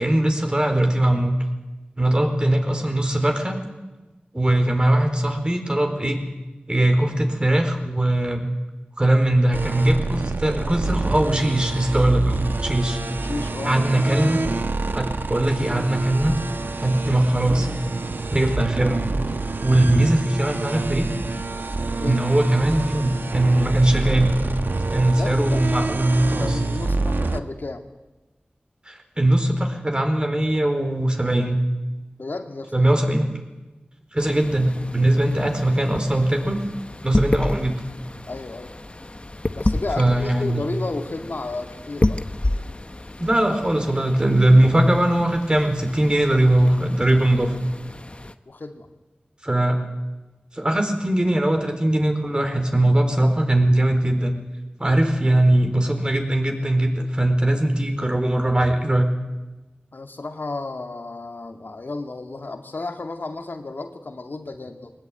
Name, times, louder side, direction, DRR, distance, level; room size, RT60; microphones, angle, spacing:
voice 1, 0.0-1.4 2.0-3.6 4.3-6.2 6.7-8.5 9.0-12.4 12.6-13.0 13.6-14.4 14.9-16.4 16.8-17.9 18.3-19.0 19.6-21.1 22.0-24.3 24.9-26.4 28.9-31.6 32.7-33.3 34.1-36.6 37.0-37.8 40.0-40.6 43.2-47.5 49.4-49.8 50.5-54.3 54.8-59.1, right 1 dB, 25° right, 4 dB, 4.5 m, -20 dB
sound 1, 9.5-27.4, right 3 dB, 75° right, 1.3 m, -27 dB
voice 2, 13.2-14.2 19.8-19.9 22.0-22.2 25.1-25.7 26.4-27.9 32.2-32.9 38.3-38.7 39.6-42.2 48.1-48.2 48.5-48.9 59.9-64.9, left 3 dB, 75° left, 5 dB, 2.2 m, -33 dB
sound 2, 34.2-48.3, left 2 dB, 35° left, 1.1 m, -30 dB
22.0 x 19.5 x 9.2 m, 1.1 s
wide cardioid pair, 65°, 3 cm